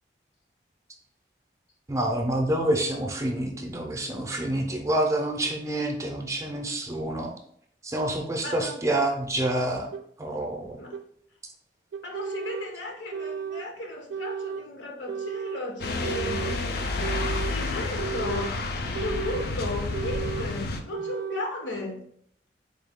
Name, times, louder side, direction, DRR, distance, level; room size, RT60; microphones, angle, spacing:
voice 1, 1.9-7.3 7.8-9.9 10.2-10.8, right 1 dB, 15° right, 2 dB, 0.5 m, -27 dB
voice 2, 8.4-8.8 10.8-11.0 12.0-16.8 17.5-18.6 18.8-22.0, left 2 dB, 85° left, 2 dB, 0.8 m, -35 dB
sound 1, 9.9-10.0 10.9-11.0 11.9-12.7 13.1-13.7 14.1-14.7 15.1-15.6 16.0-16.6 17.0-17.6 18.0-18.5 18.9-19.5 19.9-20.5 20.9-21.5, right 7 dB, 85° right, 0.3 m, -34 dB
sound 2, 15.8-20.8, left 2 dB, 55° left, 0.4 m, -30 dB
3.8 x 2.3 x 3.5 m, 0.66 s
head